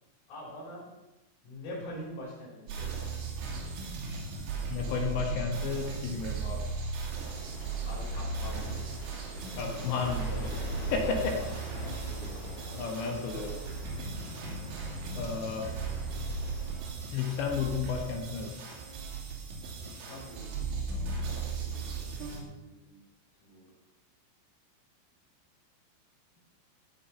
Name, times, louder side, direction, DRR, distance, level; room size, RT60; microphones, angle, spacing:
voice 1, 0.3-0.9 1.4-3.1 7.9-8.8 11.4-12.4 13.3-13.9 19.8-23.0 23.4-23.7, left 1 dB, 90° left, -4 dB, 8.0 m, -45 dB
sound 1, 2.7-22.4, right 4 dB, 65° right, 4.4 m, -36 dB
voice 2, 4.7-6.7 9.6-10.6 10.9-11.4 12.7-13.5 15.1-15.7 17.1-18.5, left 6 dB, 70° left, 3 dB, 3.1 m, -32 dB
sound 2, 7.1-16.7, left 1 dB, 40° left, 1.5 m, -45 dB
18.0 x 7.4 x 5.7 m, 1.0 s
omnidirectional pair, 6.0 m